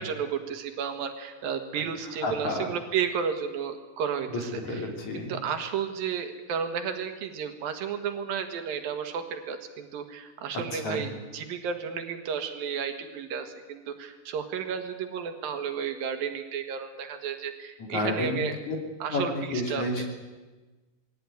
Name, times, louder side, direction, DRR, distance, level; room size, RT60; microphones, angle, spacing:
voice 1, 0.0-4.9 5.1-18.6 19.0-20.0, right 7 dB, 80° right, 7 dB, 3.5 m, -32 dB
voice 2, 2.2-2.7 4.3-5.3 10.7-11.0 17.8-18.8 19.1-20.1, left 2 dB, 55° left, 3 dB, 4.5 m, -31 dB
21.0 x 17.0 x 9.6 m, 1.2 s
omnidirectional pair, 4.1 m